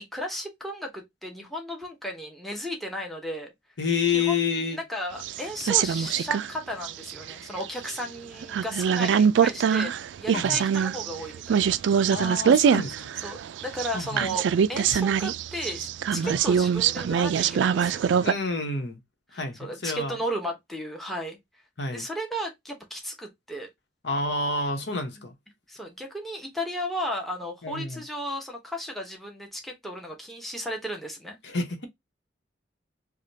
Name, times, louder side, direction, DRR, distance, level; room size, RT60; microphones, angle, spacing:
voice 1, 0.0-3.5 4.1-9.9 10.2-11.7 13.2-18.0 19.3-21.4 21.9-23.7 25.7-31.4, equal, ahead, 0.9 m, -34 dB
voice 2, 3.8-4.8 10.3-10.6 12.1-13.1 13.9-14.2 16.2-16.4 18.2-19.0 19.3-20.2 21.8-22.1 24.0-25.3 27.6-28.0 31.4-31.9, left 4 dB, 70° left, 1.1 m, -29 dB
sound 1, 5.2-6.5 6.8-8.0 8.4-18.3, right 7 dB, 75° right, 0.3 m, -23 dB
4.9 x 2.3 x 2.7 m
head